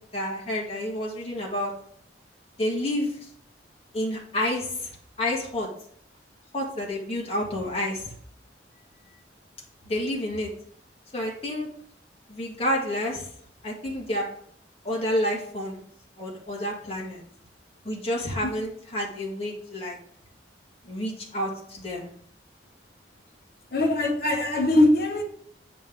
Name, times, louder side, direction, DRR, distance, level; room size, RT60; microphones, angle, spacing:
voice 1, 0.1-1.7 2.6-3.2 3.9-5.7 6.5-8.1 9.9-10.5 11.1-11.7 12.3-13.3 13.6-14.3 14.8-15.8 16.2-17.2 17.8-20.0 20.9-22.1, left 1 dB, 35° left, -2 dB, 1.9 m, -29 dB
voice 2, 23.7-25.2, left 1 dB, 55° left, 1 dB, 1.4 m, -21 dB
8.4 x 5.1 x 3.7 m, 0.63 s
head